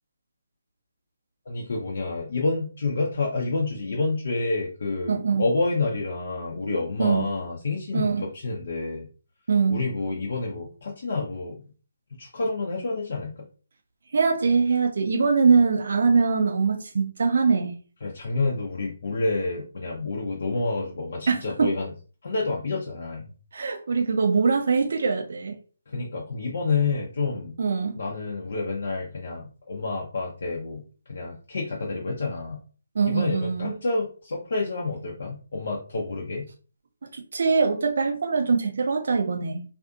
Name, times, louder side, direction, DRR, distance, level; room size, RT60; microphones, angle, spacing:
voice 1, 1.5-9.1 9.7-11.6 12.2-13.3 18.0-21.9 22.2-23.3 25.9-27.5 28.0-30.8 31.1-32.6 33.0-36.5, left 3 dB, 55° left, 0.6 m, -28 dB
voice 2, 5.1-5.4 7.0-7.3 7.9-8.2 9.5-9.8 14.1-17.8 21.3-21.7 23.5-25.6 27.6-28.0 33.0-33.7 37.0-39.6, right 5 dB, 55° right, 0.4 m, -23 dB
2.5 x 2.5 x 2.3 m
figure-of-eight pair, 145°, 0 cm